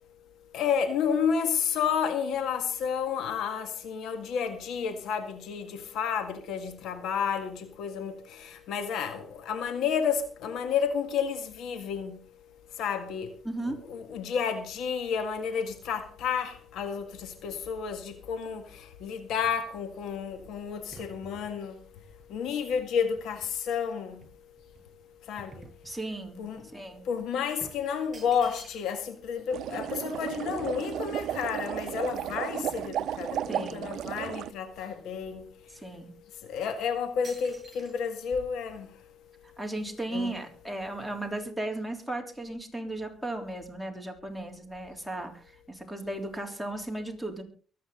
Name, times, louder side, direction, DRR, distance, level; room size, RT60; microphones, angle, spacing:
voice 1, 0.5-12.2 12.8-13.3 13.7-18.6 19.0-21.8 22.3-24.2 25.3-25.5 26.4-26.6 27.1-35.4 36.5-38.9 40.1-40.4, left 7 dB, 80° left, 1.8 m, -31 dB
voice 2, 13.4-13.8 25.8-26.4 26.7-27.0 33.5-33.9 35.8-36.1 39.6-45.4 45.7-47.4, right 1 dB, ahead, 3.4 m, -35 dB
sound 1, 18.7-23.8 24.2-26.4 26.7-26.9 27.6-29.2 29.5-29.6 29.8-31.9 32.5-32.6 32.8-33.6 33.9-35.1 35.7-35.8 36.5-36.7 37.2-37.9, right 3 dB, 35° right, 7.1 m, -52 dB
sound 2, 29.5-34.5, right 11 dB, 75° right, 0.5 m, -33 dB
23.5 x 8.8 x 3.8 m
cardioid pair, 90°, 0 cm